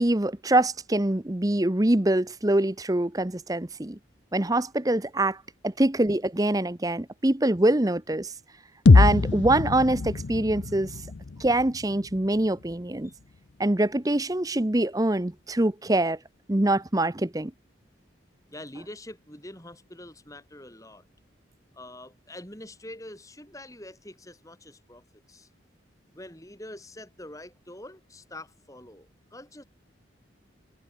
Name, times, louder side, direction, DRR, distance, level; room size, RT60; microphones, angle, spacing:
voice 1, 0.0-4.0 4.3-5.4 5.6-8.3 8.9-10.9 11.4-13.1 13.6-16.2 16.5-17.5, right 1 dB, 20° right, 0.8 m, -24 dB
sound 1, 8.9-12.8, left 3 dB, 70° left, 0.6 m, -22 dB
voice 2, 18.5-21.0 21.7-25.0 25.3-25.5 26.1-29.6, left 1 dB, 15° left, 4.6 m, -45 dB
head